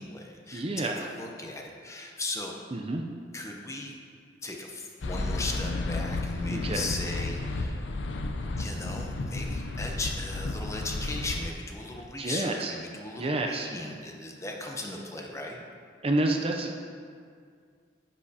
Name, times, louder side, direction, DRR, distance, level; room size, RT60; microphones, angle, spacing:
voice 1, 0.0-2.6 3.3-4.0 4.4-7.8 8.6-15.6, left 2 dB, 15° left, 0 dB, 0.8 m, -37 dB
voice 2, 0.5-1.1 2.7-3.0 6.5-6.9 12.2-12.7 13.2-13.7 16.0-16.7, right 2 dB, 30° right, 3 dB, 0.5 m, -29 dB
sound 1, 5.0-11.5, left 2 dB, 75° left, 0.5 m, -32 dB
9.9 x 8.8 x 2.8 m, 2.1 s
head